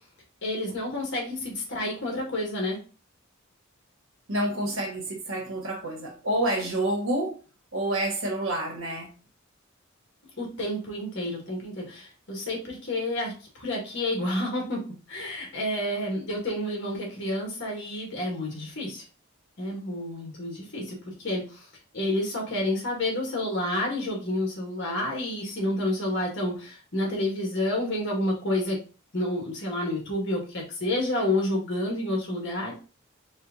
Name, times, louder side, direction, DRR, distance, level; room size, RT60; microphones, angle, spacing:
voice 1, 0.4-2.8 10.4-13.3 13.6-14.8 15.1-19.0 19.6-21.6 21.9-28.8 29.1-32.7, left 1 dB, 60° left, 1.6 m, -29 dB
voice 2, 4.3-7.3 7.7-9.1, right 1 dB, 70° right, 1.3 m, -28 dB
4.4 x 2.5 x 3.6 m
head